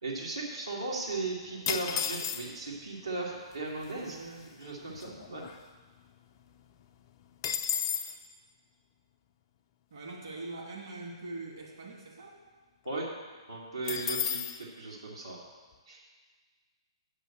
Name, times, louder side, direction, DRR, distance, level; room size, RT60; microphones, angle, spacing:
voice 1, 0.0-4.2 4.6-5.4 12.8-13.1 13.5-15.4 15.9-16.0, right 3 dB, 75° right, -5 dB, 2.2 m, -37 dB
voice 2, 1.5-2.0 3.9-4.5 9.9-12.3, right 2 dB, 55° right, -3 dB, 2.4 m, -43 dB
sound 1, 1.7-2.7 3.5-3.6 3.8-4.2 4.6-6.1 6.4-6.5 6.8-8.2 13.9-14.6, left 8 dB, 35° left, 0.6 m, -33 dB
7.7 x 6.6 x 7.7 m, 1.4 s
figure-of-eight pair, 120°, 3 cm